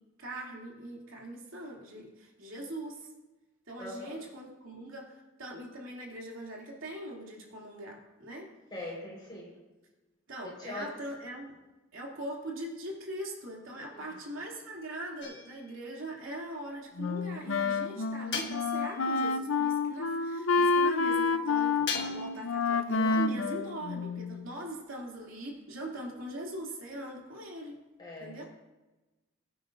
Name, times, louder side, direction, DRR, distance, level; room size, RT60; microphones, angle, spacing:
voice 1, 0.2-3.1 3.7-8.5 10.3-11.5 11.9-27.8 28.2-28.4, right 1 dB, 80° right, -2 dB, 2.7 m, -41 dB
voice 2, 3.8-4.2 8.7-9.6 10.6-10.9 13.9-14.0 28.0-28.4, left 2 dB, 20° left, -4 dB, 4.4 m, -41 dB
sound 1, 15.2-15.9 18.3-19.1 21.9-22.5, left 6 dB, 60° left, 1.4 m, -37 dB
Wind instrument woodwind instrument, 17.0-24.5, left 4 dB, 80° left, 0.6 m, -29 dB
21.0 x 9.0 x 2.6 m, 1.1 s
head